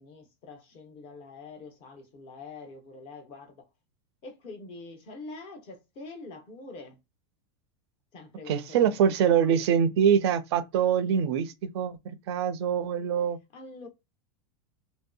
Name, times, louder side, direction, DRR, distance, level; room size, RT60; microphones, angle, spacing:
voice 1, 0.0-3.7 4.2-7.0 8.1-9.7 13.5-13.9, left 3 dB, 35° left, 0.6 m, -45 dB
voice 2, 8.5-13.4, right 8 dB, 55° right, 0.4 m, -24 dB
3.0 x 2.6 x 2.2 m
supercardioid pair, 165°, 16 cm